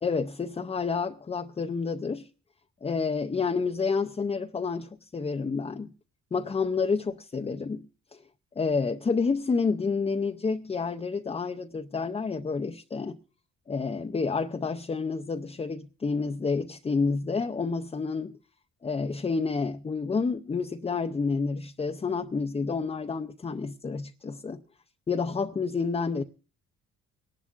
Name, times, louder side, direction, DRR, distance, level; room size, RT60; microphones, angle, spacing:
voice 1, 0.0-2.3 2.8-5.9 6.3-7.9 8.6-13.2 13.7-18.4 18.8-24.6 25.1-26.2, left 4 dB, 20° left, 0.5 m, -29 dB
26.0 x 11.5 x 2.4 m
cardioid pair, 90°, 30 cm